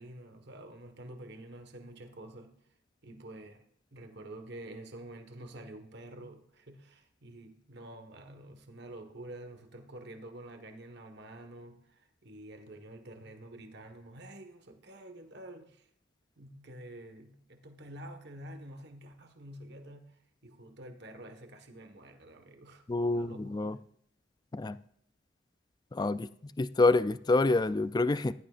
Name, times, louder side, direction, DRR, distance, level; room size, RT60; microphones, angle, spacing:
voice 1, 0.0-2.6 3.0-3.6 3.9-15.9 16.4-22.9 23.1-23.8, right 1 dB, 65° right, 1.5 m, -48 dB
voice 2, 22.9-23.8 24.5-24.8 25.9-28.3, left 2 dB, 20° left, 0.4 m, -27 dB
15.0 x 11.5 x 2.5 m
head